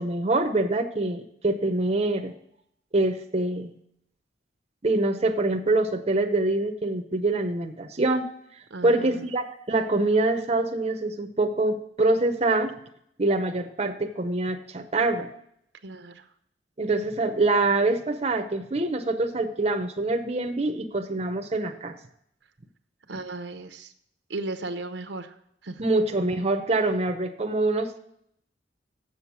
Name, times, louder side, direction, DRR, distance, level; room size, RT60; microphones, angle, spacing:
voice 1, 0.0-2.3 2.9-3.7 4.8-8.2 8.8-12.7 13.2-15.3 16.8-22.0 25.8-28.0, right 2 dB, 35° right, 5 dB, 0.7 m, -25 dB
voice 2, 8.7-9.2 15.8-16.3 23.1-23.9 24.3-25.4 25.6-25.8, right 2 dB, 75° right, 8 dB, 0.8 m, -36 dB
7.5 x 7.2 x 6.2 m, 0.71 s
head